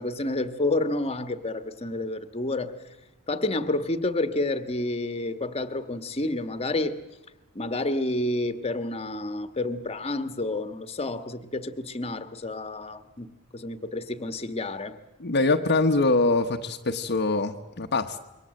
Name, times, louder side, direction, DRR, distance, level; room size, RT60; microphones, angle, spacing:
voice 1, 0.0-2.7 3.3-7.0 7.5-15.0, left 2 dB, 30° left, 9 dB, 1.4 m, -29 dB
voice 2, 15.2-18.2, left 3 dB, 50° left, 4 dB, 1.1 m, -23 dB
27.0 x 23.0 x 7.7 m, 1.1 s
head